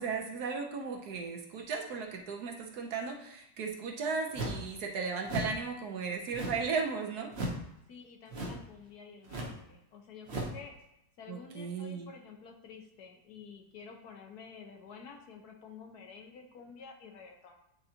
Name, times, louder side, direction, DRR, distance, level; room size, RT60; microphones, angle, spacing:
voice 1, 0.0-7.3 11.3-12.1, right 5 dB, 65° right, 2 dB, 1.2 m, -36 dB
sound 1, 4.3-4.7 5.2-5.6 6.3-6.7 7.3-7.7 8.3-8.7 9.3-9.6 10.3-10.6, right 1 dB, 45° right, 0.9 m, -36 dB
voice 2, 7.9-10.7 11.2-17.6, left 5 dB, 65° left, 3 dB, 1.2 m, -50 dB
9.1 x 3.9 x 2.8 m, 0.79 s
omnidirectional pair, 2.0 m